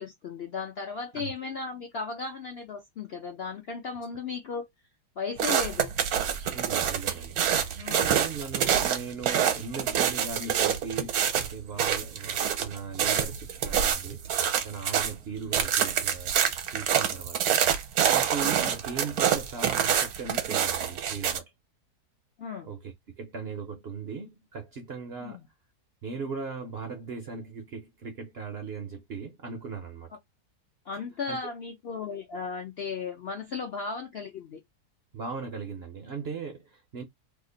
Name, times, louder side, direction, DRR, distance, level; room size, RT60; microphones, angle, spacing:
voice 1, 0.0-4.7 5.2-5.9 7.8-8.1 18.6-18.7 22.4-22.7 25.2-25.5 30.9-34.6, left 5 dB, 60° left, 0.6 m, -36 dB
sound 1, 5.4-15.1 15.5-21.4, right 9 dB, 75° right, 1.1 m, -26 dB
voice 2, 6.5-14.2 14.6-16.3 16.7-17.6 18.1-21.5 22.6-25.4 26.0-30.1 31.3-31.4 35.1-37.0, right 5 dB, 60° right, 0.7 m, -38 dB
2.8 x 2.4 x 3.8 m
omnidirectional pair, 1.7 m